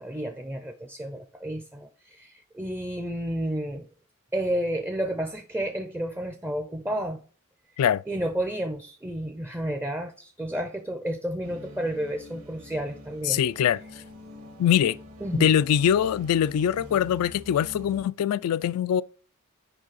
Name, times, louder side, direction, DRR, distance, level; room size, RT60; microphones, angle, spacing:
voice 1, 0.0-3.9 4.3-7.2 8.1-13.4 15.2-15.6, right 1 dB, 10° right, 0.5 m, -31 dB
sound 1, 11.4-18.1, left 1 dB, 75° right, 1.8 m, -46 dB
voice 2, 13.3-13.8 14.6-15.0 15.4-19.0, left 9 dB, 75° left, 0.3 m, -23 dB
8.8 x 5.3 x 4.0 m
head